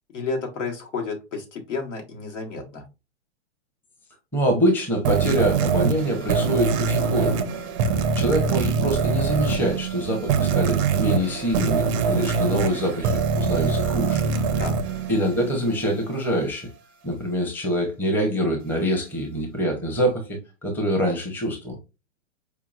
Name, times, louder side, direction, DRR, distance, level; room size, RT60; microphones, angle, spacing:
voice 1, 0.1-2.8 12.0-12.4 14.6-14.7, left 4 dB, 85° left, 1 dB, 1.6 m, -31 dB
voice 2, 4.3-7.3 8.1-14.2 15.1-16.7 17.0-21.8, equal, 5° left, 1 dB, 0.7 m, -25 dB
sound 1, 5.0-15.8, right 5 dB, 30° right, 0.4 m, -24 dB
4.7 x 2.9 x 2.4 m, 0.27 s
hypercardioid pair, 135°, 36 cm